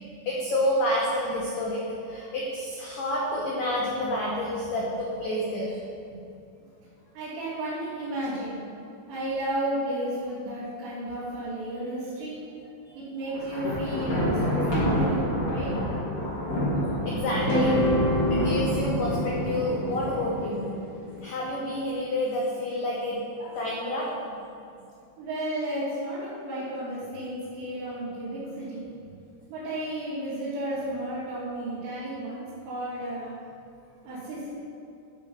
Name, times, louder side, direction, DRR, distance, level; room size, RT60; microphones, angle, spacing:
voice 1, 0.3-5.8 12.9-13.0 16.8-17.8 18.3-20.7 21.2-24.1, left 1 dB, 70° left, -4 dB, 2.1 m, -29 dB
voice 2, 7.2-8.7 9.1-12.4 13.0-15.7 25.2-28.9 29.5-33.3 34.0-34.5, right 1 dB, 80° right, -13 dB, 5.2 m, -33 dB
Thunder, 13.3-20.6, equal, 30° left, 2.5 m, -28 dB
sound 1, 17.3-21.5, equal, 45° left, 3.6 m, -28 dB
13.5 x 7.3 x 5.4 m, 2.6 s
omnidirectional pair, 5.7 m